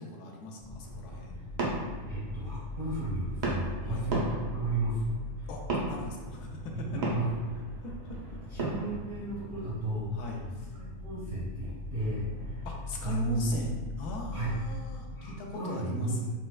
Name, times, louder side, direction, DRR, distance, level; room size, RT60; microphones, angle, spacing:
voice 1, 0.0-1.4 3.8-4.1 5.5-5.6 5.9-7.0 7.8-8.2 10.1-10.4 12.6-16.3, left 2 dB, 80° left, 0 dB, 1.1 m, -39 dB
sound 1, 0.6-15.7, left 2 dB, 25° left, 0.7 m, -41 dB
sound 2, 0.8-13.0, right 2 dB, 75° right, 0.4 m, -38 dB
voice 2, 2.1-5.1 5.4-5.5 6.7-7.3 8.5-10.5 11.0-12.7 13.0-13.5 14.3-14.5 15.1-16.1, right 2 dB, 45° right, -9 dB, 0.7 m, -34 dB
4.2 x 2.2 x 2.3 m, 1.3 s
omnidirectional pair, 1.7 m